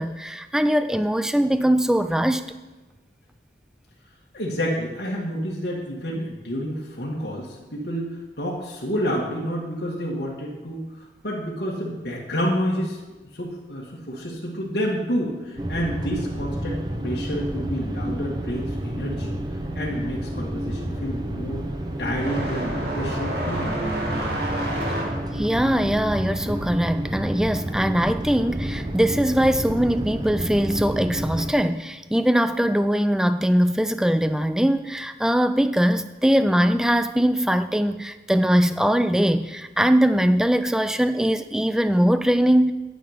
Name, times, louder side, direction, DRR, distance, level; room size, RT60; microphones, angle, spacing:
voice 1, 0.0-2.5 25.3-42.7, equal, 5° right, 11 dB, 0.3 m, -21 dB
voice 2, 4.3-13.0 13.3-19.4 19.7-21.6 22.0-23.7, equal, 70° left, -5 dB, 1.7 m, -29 dB
sound 1, 15.6-31.5, right 1 dB, 25° right, 0.7 m, -30 dB
sound 2, 20.2-28.5 28.8-29.8 30.8-30.9 31.7-31.8 33.5-33.7, right 1 dB, 70° right, 2.2 m, -31 dB
9.4 x 9.1 x 5.1 m, 1.2 s
head